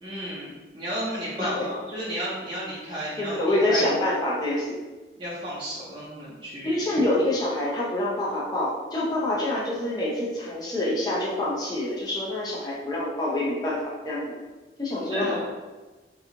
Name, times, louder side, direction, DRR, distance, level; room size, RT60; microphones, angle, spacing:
voice 1, 0.0-3.9 5.2-6.8 15.0-15.5, equal, 25° right, -10 dB, 0.6 m, -33 dB
voice 2, 3.2-4.8 6.6-13.8 14.0-14.3 14.8-15.3, left 1 dB, 20° left, -7 dB, 0.5 m, -26 dB
3.0 x 2.3 x 3.6 m, 1.2 s
head